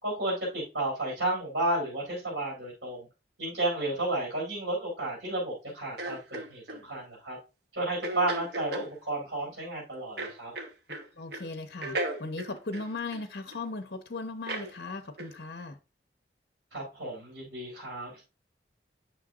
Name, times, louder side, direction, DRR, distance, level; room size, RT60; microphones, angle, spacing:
voice 1, 0.0-3.1 3.4-7.4 7.7-10.5 16.7-18.2, right 1 dB, 80° right, 3.9 m, -32 dB
sound 1, 6.0-6.8 8.0-8.9 10.2-11.1 11.3-11.5 11.8-13.6 14.5-14.7 15.2-15.4, right 2 dB, 65° right, 1.1 m, -36 dB
voice 2, 10.9-15.8, left 3 dB, 60° left, 0.9 m, -38 dB
9.1 x 6.0 x 2.5 m
head